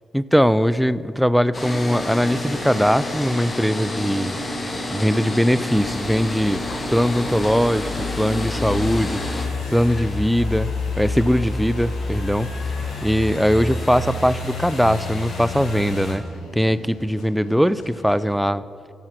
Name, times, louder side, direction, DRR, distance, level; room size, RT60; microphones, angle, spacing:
voice 1, 0.1-4.4 4.9-6.6 6.9-9.2 9.7-10.7 11.0-12.5 13.0-16.2 16.5-18.6, equal, ahead, 16 dB, 0.5 m, -20 dB
sound 1, 1.5-9.5, left 1 dB, 35° left, 2.2 m, -29 dB
sound 2, 5.7-16.1, left 3 dB, 70° left, 2.4 m, -29 dB
sound 3, 7.0-18.3, left 4 dB, 90° left, 1.0 m, -43 dB
14.5 x 5.6 x 6.1 m, 2.6 s
hypercardioid pair, 45°, 0 cm